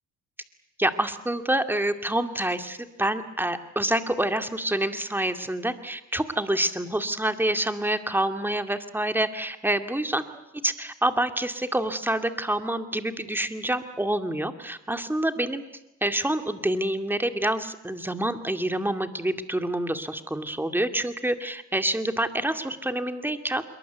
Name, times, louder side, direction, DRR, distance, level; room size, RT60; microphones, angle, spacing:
voice 1, 0.8-10.2 10.6-15.6 16.0-23.6, right 1 dB, 5° right, 8 dB, 2.4 m, -27 dB
26.5 x 22.5 x 8.1 m, 0.89 s
cardioid pair, 90°, 30 cm